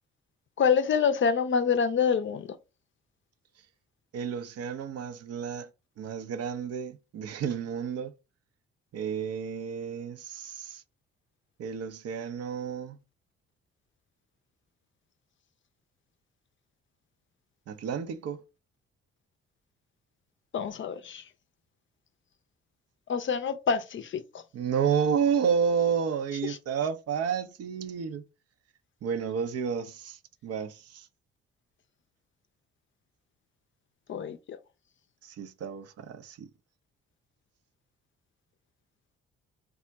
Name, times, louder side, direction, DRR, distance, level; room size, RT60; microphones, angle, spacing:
voice 1, 0.6-2.5 20.5-21.2 23.1-24.2 34.1-34.6, left 6 dB, 40° left, 0.5 m, -26 dB
voice 2, 4.1-5.7 6.0-8.1 8.9-10.8 11.6-13.0 17.7-18.4 24.5-28.2 29.0-31.1 35.2-36.5, right 7 dB, 50° right, 0.6 m, -31 dB
3.5 x 2.1 x 3.8 m
hypercardioid pair, 45°, 31 cm